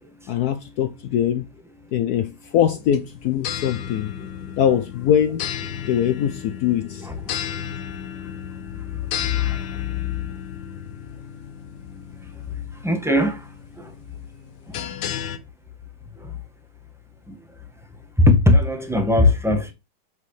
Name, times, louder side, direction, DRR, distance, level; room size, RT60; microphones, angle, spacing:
voice 1, 0.3-1.4 1.9-4.1 4.6-5.4 5.9-7.1, left 9 dB, 80° left, 0.8 m, -22 dB
sound 1, 2.6-15.4, left 9 dB, 60° left, 1.3 m, -34 dB
voice 2, 7.0-7.4 9.3-9.6 12.8-13.4 13.8-13.9 18.2-19.7, left 2 dB, ahead, 1.2 m, -18 dB
8.2 x 4.7 x 3.3 m
omnidirectional pair, 2.3 m